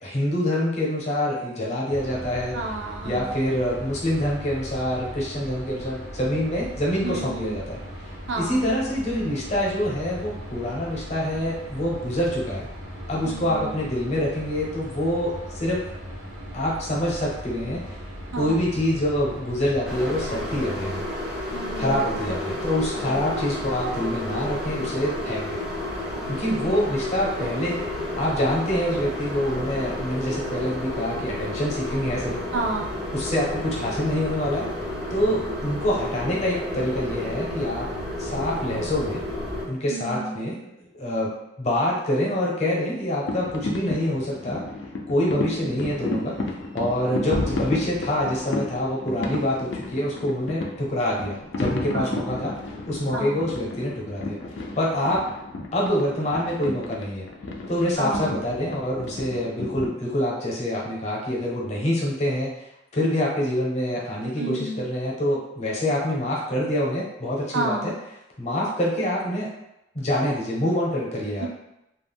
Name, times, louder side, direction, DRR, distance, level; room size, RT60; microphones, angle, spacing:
voice 1, 0.0-2.6 3.0-12.7 13.1-15.8 16.5-18.0 18.3-21.1 21.7-25.6 26.3-27.8 28.2-32.4 33.1-34.7 35.1-37.9 38.2-39.2 39.7-40.6 40.9-44.6 45.1-46.4 46.7-52.5 52.9-54.4 54.8-55.2 55.7-57.2 57.7-62.5 62.9-67.9 68.4-69.5 69.9-71.5, left 1 dB, 35° left, -4 dB, 0.7 m, -26 dB
sound 1, 1.9-20.7, equal, 90° right, 0.8 m, -38 dB
voice 2, 2.5-3.3 7.0-7.5 8.3-8.6 13.2-13.8 18.3-18.7 21.5-22.6 23.0-23.2 26.4-26.9 32.5-33.0 39.9-40.4 45.3-45.7 47.1-47.5 51.9-52.3 53.1-53.5 58.0-58.3 64.4-64.9 67.5-68.0 71.4-71.5, right 2 dB, 65° right, 1 dB, 0.4 m, -32 dB
sound 2, 19.8-39.7, left 1 dB, 5° right, 0.5 m, -31 dB
sound 3, 43.2-59.9, left 2 dB, 65° left, 0.4 m, -33 dB
2.3 x 2.1 x 3.4 m, 0.87 s
head